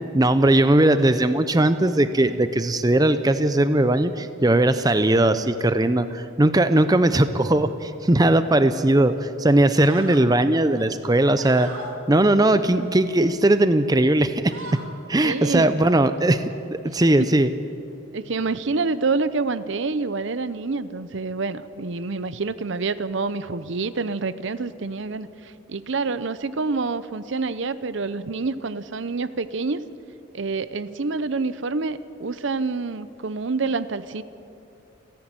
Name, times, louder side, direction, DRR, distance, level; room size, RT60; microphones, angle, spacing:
voice 1, 0.1-11.7 12.1-14.5 15.1-16.4 16.7-17.5, right 1 dB, 20° right, 11 dB, 0.6 m, -19 dB
sound 1, 8.8-9.1 9.5-10.3 10.7-12.0 12.5-13.4 13.8-14.0 14.3-14.9, right 1 dB, 80° right, 3.2 m, -41 dB
voice 2, 15.2-15.7 16.9-17.0 18.1-29.8 30.3-34.2, right 4 dB, 65° right, 14 dB, 0.7 m, -27 dB
29.0 x 10.5 x 9.0 m, 2.8 s
head